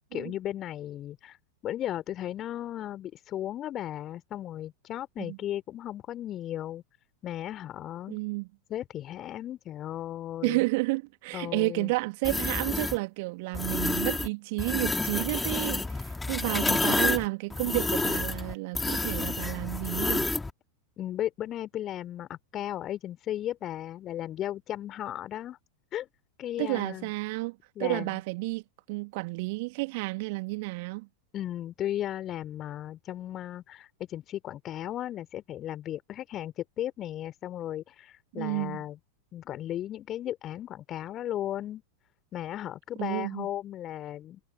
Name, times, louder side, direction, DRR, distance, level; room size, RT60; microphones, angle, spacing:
voice 1, 0.1-1.4 1.6-6.8 7.2-8.2 8.7-10.6 11.3-11.9 21.0-25.6 25.9-26.1 26.4-27.1 27.8-28.2 31.3-39.0 39.3-41.8 42.3-44.4, left 12 dB, 30° left, 3.7 m, -35 dB
voice 2, 8.1-8.5 10.4-20.3 26.6-28.6 28.9-31.1 38.4-38.8 43.0-43.5, right 26 dB, 50° right, 2.3 m, -31 dB
sound 1, 12.2-13.0 13.5-14.3 14.6-20.5, left 3 dB, 10° left, 2.1 m, -29 dB
figure-of-eight pair, 90°, 0 cm